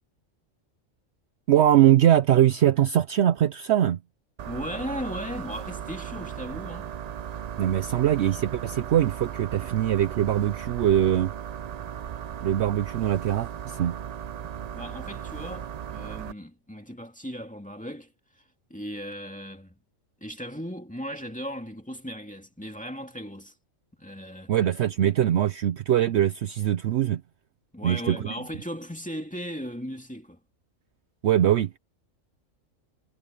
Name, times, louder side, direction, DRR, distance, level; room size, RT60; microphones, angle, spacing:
voice 1, 1.5-4.0 7.6-11.3 12.4-14.0 24.5-27.2 27.8-28.3 31.2-31.8, right 11 dB, 65° right, 0.8 m, -22 dB
sound 1, 4.4-16.3, right 9 dB, 85° right, 0.3 m, -37 dB
voice 2, 4.5-6.9 14.7-18.4 18.7-19.8 20.2-23.5 24.0-24.5 27.7-30.4, equal, 5° left, 2.4 m, -37 dB
omnidirectional pair, 1.3 m